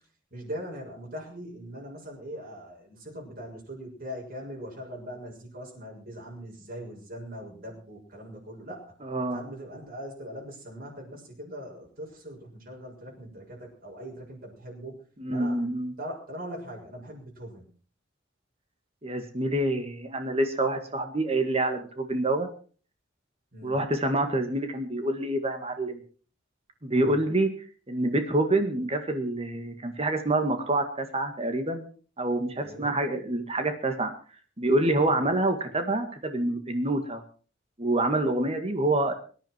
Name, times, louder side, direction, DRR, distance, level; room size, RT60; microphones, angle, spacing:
voice 1, 0.3-8.8 9.3-15.0 15.3-15.6 16.0-17.7 23.5-23.8 26.9-27.2 32.6-33.0 35.1-35.2, equal, 55° right, -2 dB, 6.7 m, -41 dB
voice 2, 9.0-9.4 15.2-15.9 19.0-22.5 23.6-26.0 26.8-27.5 27.9-31.8 32.2-34.1 34.6-37.2 37.8-39.1, right 2 dB, 35° right, 7 dB, 1.9 m, -27 dB
24.0 x 11.0 x 4.6 m, 0.40 s
head